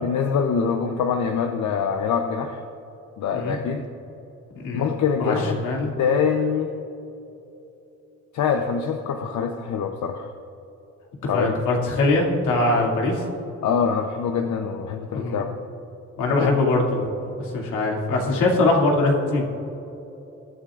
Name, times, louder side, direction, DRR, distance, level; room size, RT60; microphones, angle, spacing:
voice 1, 0.0-2.6 3.2-3.8 4.7-5.6 6.0-6.7 8.3-10.3 11.3-11.6 13.6-15.5 16.4-16.5, left 6 dB, 70° left, 5 dB, 0.8 m, -24 dB
voice 2, 5.2-5.9 11.3-13.2 15.1-15.4 16.2-19.4, left 2 dB, 90° left, -2 dB, 2.6 m, -22 dB
22.5 x 9.9 x 2.5 m, 3.0 s
cardioid pair, 90°, 30 cm